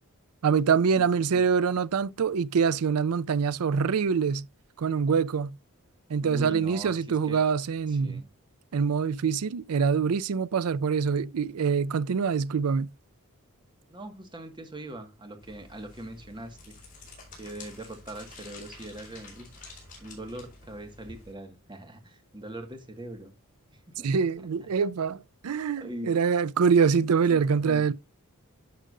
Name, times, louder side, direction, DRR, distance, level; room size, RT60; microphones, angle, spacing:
voice 1, 0.4-4.5 4.8-5.5 6.1-8.2 8.7-12.9 24.0-27.9, right 6 dB, 80° right, 0.4 m, -25 dB
voice 2, 6.2-7.0 7.2-7.4 7.9-8.3 13.9-16.7 17.4-19.5 20.0-23.3 23.7-24.1 25.8-26.2 26.9-27.4 27.7-27.9, right 1 dB, 20° right, 1.7 m, -41 dB
sound 1, 15.4-21.3, left 3 dB, 40° left, 4.9 m, -49 dB
11.0 x 6.4 x 2.6 m
head